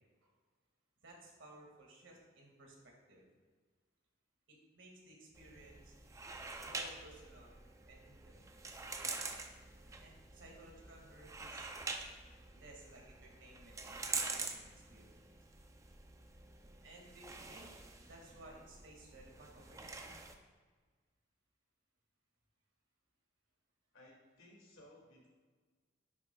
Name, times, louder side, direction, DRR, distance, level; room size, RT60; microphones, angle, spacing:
voice 1, 1.0-3.2 4.5-5.9 6.6-7.6 7.9-8.5 10.0-11.7 12.5-15.2 16.8-17.7 18.0-20.1, right 1 dB, 80° right, -1 dB, 1.9 m, -58 dB
sound 1, 5.3-20.3, right 4 dB, 15° right, 0.4 m, -46 dB
voice 2, 23.9-25.3, left 1 dB, 90° left, -2 dB, 2.2 m, -60 dB
10.0 x 6.5 x 2.3 m, 1.5 s
head